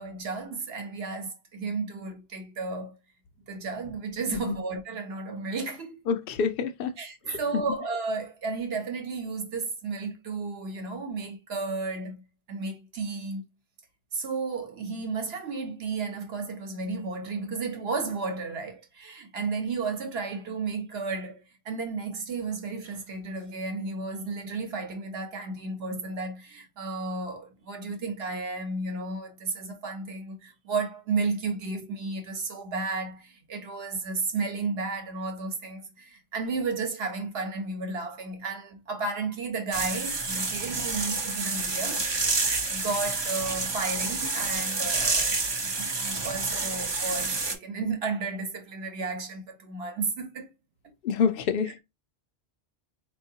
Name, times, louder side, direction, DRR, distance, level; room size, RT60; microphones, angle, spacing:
voice 1, 0.0-2.9 3.5-6.0 7.0-12.2 12.5-13.4 14.1-42.1 42.4-50.5, right 4 dB, 65° right, 1.1 m, -33 dB
voice 2, 6.1-6.9 7.3-7.4 51.0-51.8, left 6 dB, 60° left, 0.8 m, -27 dB
sound 1, 39.7-47.6, right 3 dB, 30° right, 0.5 m, -29 dB
4.6 x 2.8 x 2.7 m
omnidirectional pair, 1.1 m